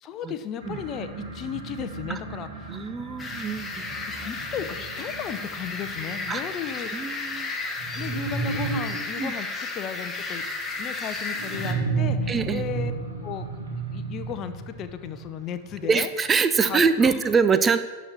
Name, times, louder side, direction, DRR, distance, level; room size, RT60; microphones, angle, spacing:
voice 1, 0.0-2.8 4.2-7.3 7.9-10.4 10.8-12.9 13.2-13.5 13.9-16.1 16.7-17.2, left 9 dB, 35° left, 10 dB, 0.7 m, -35 dB
sound 1, 0.6-16.1, right 4 dB, 65° right, 2.0 m, -34 dB
voice 2, 2.7-3.9 6.3-6.4 6.9-7.5 9.2-9.3 12.3-12.6 15.9-17.8, right 5 dB, 20° right, 11 dB, 0.5 m, -24 dB
sound 2, 3.2-11.7, left 3 dB, 15° left, 1.3 m, -33 dB
11.5 x 4.2 x 7.1 m, 1.3 s
figure-of-eight pair, 90°, 0 cm